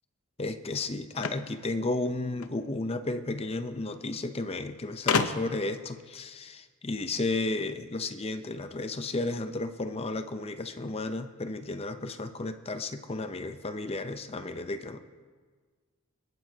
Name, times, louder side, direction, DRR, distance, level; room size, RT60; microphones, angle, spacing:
voice 1, 0.4-15.0, left 2 dB, 30° left, 9 dB, 0.6 m, -33 dB
sound 1, 1.1-2.6 3.7-3.8 4.0-4.1 5.1-5.7, left 5 dB, 85° left, 0.7 m, -30 dB
26.0 x 11.0 x 2.8 m, 1.5 s
head